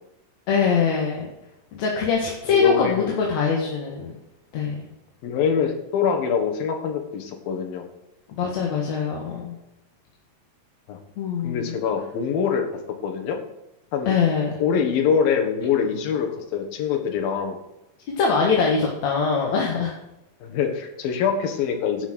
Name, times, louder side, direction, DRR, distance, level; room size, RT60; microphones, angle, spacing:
voice 1, 0.5-1.3 1.7-4.1 4.5-4.9 8.4-9.6 11.2-11.8 14.1-14.5 18.2-20.0, left 5 dB, 55° left, -1 dB, 2.6 m, -23 dB
voice 2, 2.5-3.2 5.2-7.9 10.9-11.0 11.4-12.6 13.0-13.4 13.9-14.2 14.6-17.6 20.4-22.1, left 7 dB, 80° left, 3 dB, 3.4 m, -24 dB
11.5 x 7.0 x 6.2 m, 0.91 s
omnidirectional pair, 4.1 m